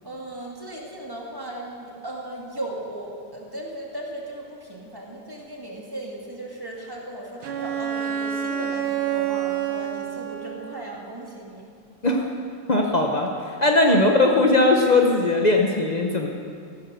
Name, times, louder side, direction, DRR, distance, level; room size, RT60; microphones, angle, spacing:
voice 1, 0.0-11.6 13.8-14.0, right 1 dB, 10° right, -2 dB, 2.0 m, -36 dB
Bowed string instrument, 7.4-10.9, right 10 dB, 85° right, 1.8 m, -28 dB
voice 2, 12.7-13.3 13.6-16.3, left 2 dB, 75° left, 1 dB, 0.4 m, -19 dB
14.5 x 12.0 x 6.7 m, 2.3 s
omnidirectional pair, 2.3 m